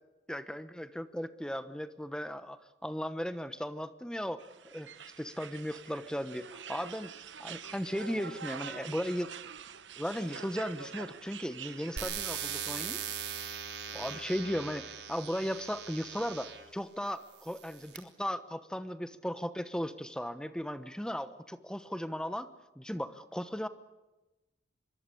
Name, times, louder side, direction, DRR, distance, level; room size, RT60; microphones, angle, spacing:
voice 1, 0.3-2.6 2.8-4.5 4.7-4.9 5.2-7.1 7.4-9.3 10.0-13.0 13.9-22.5 22.8-23.7, equal, 5° left, 11 dB, 1.0 m, -36 dB
sound 1, 4.4-12.1, right 7 dB, 85° right, 1.1 m, -46 dB
sound 2, 12.0-16.7 17.4-18.0, right 8 dB, 65° right, 3.3 m, -40 dB
24.5 x 23.5 x 8.5 m, 1.1 s
head